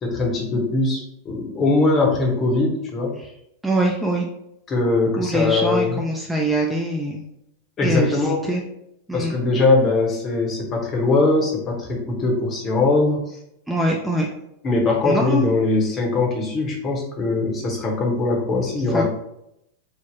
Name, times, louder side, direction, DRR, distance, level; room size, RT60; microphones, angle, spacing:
voice 1, 0.0-3.2 4.7-6.0 7.8-8.4 9.1-13.4 14.6-19.0, left 3 dB, 25° left, 0 dB, 0.7 m, -21 dB
voice 2, 3.6-4.3 5.2-7.2 7.8-8.6 9.1-9.4 13.7-14.3 15.0-15.4 18.9-19.0, right 1 dB, 5° right, -1 dB, 0.3 m, -23 dB
3.3 x 2.0 x 2.6 m, 0.78 s
figure-of-eight pair, 90°, 0 cm